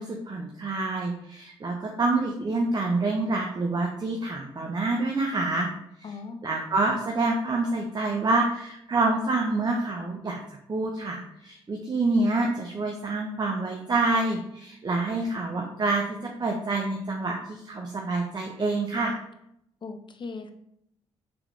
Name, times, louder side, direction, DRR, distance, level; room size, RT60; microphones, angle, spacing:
voice 1, 0.0-5.7 6.0-6.1 6.4-10.4 10.7-19.2, right 2 dB, 30° right, 1 dB, 0.6 m, -27 dB
voice 2, 6.0-6.4 19.8-20.5, left 4 dB, 40° left, 7 dB, 0.6 m, -38 dB
3.5 x 3.4 x 3.1 m, 0.76 s
hypercardioid pair, 45°, 13 cm